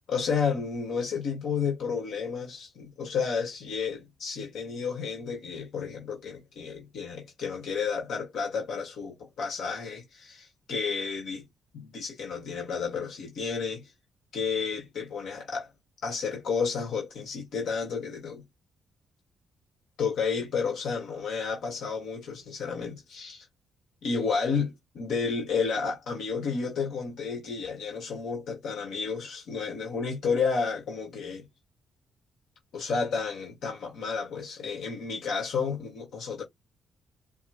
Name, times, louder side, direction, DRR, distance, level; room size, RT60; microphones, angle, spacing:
voice 1, 0.1-11.5 11.7-13.9 14.3-15.7 16.0-18.4 20.0-23.4 24.0-31.4 32.7-36.4, left 5 dB, 75° left, 1.5 m, -31 dB
5.5 x 2.2 x 2.9 m
cardioid pair, 140°, 0 cm